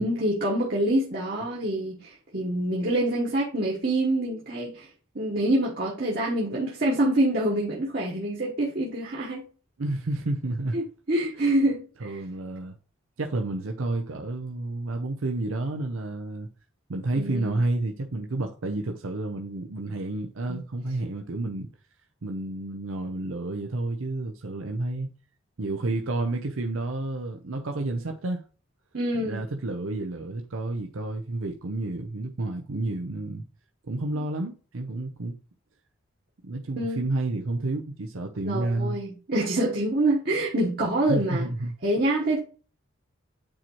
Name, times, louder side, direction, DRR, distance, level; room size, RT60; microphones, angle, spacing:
voice 1, 0.0-4.9 5.1-9.5 10.7-12.2 17.1-17.6 20.5-20.6 28.9-29.4 36.8-37.0 38.4-41.5 41.8-42.4, right 1 dB, 50° right, 1.2 m, -26 dB
voice 2, 9.8-10.8 12.0-12.8 13.2-16.5 16.9-21.7 22.2-25.1 25.6-28.4 29.1-33.4 33.8-35.4 36.4-39.0 41.1-41.7, right 2 dB, 85° right, 0.7 m, -30 dB
8.7 x 4.4 x 3.0 m
head